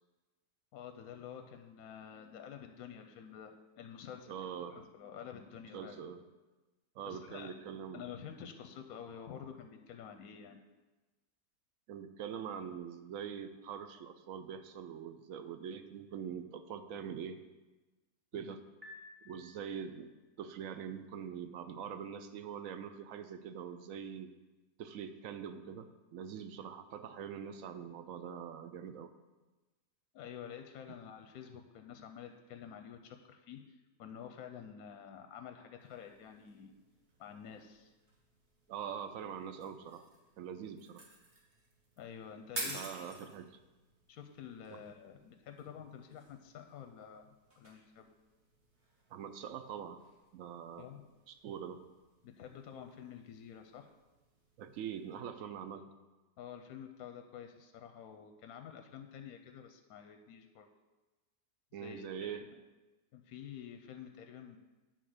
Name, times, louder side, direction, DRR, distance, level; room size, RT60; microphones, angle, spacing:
voice 1, 0.7-4.3 4.7-6.0 7.1-7.5 7.9-10.6 18.3-18.5 30.1-36.7 37.2-37.9 42.0-43.2 44.1-47.3 47.6-48.1 50.8-51.0 52.2-53.9 56.4-60.7 61.7-62.5 63.1-64.6, left 8 dB, 70° left, 6 dB, 1.0 m, -49 dB
voice 2, 4.3-4.8 5.7-6.2 7.0-8.1 11.9-17.4 18.3-18.6 19.2-20.1 20.4-24.3 24.8-29.1 38.7-40.0 40.4-41.0 42.6-43.5 44.7-44.8 49.1-50.0 50.3-50.9 51.3-51.8 54.6-55.9 61.7-62.4, right 8 dB, 70° right, 9 dB, 0.8 m, -43 dB
Piano, 18.8-20.1, left 3 dB, 20° right, 1.8 m, -54 dB
sound 1, 35.8-55.2, right 2 dB, 45° right, 1.6 m, -52 dB
9.3 x 3.9 x 6.4 m, 1.2 s
omnidirectional pair, 1.8 m